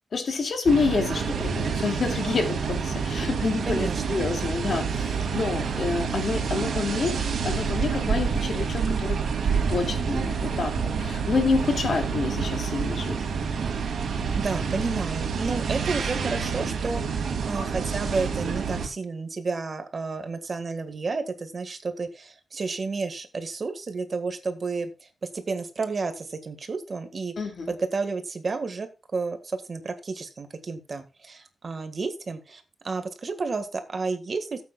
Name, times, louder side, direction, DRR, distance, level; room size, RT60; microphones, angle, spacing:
voice 1, 0.1-9.2 9.4-13.2 27.4-27.7, left 4 dB, 55° left, 2.3 m, -28 dB
sound 1, 0.7-18.9, right 5 dB, 90° right, 2.5 m, -28 dB
voice 2, 3.7-4.0 14.3-25.1 25.3-27.3 27.7-34.6, right 4 dB, 40° right, 1.7 m, -31 dB
17.0 x 8.6 x 2.4 m
wide cardioid pair, 140°, 0 cm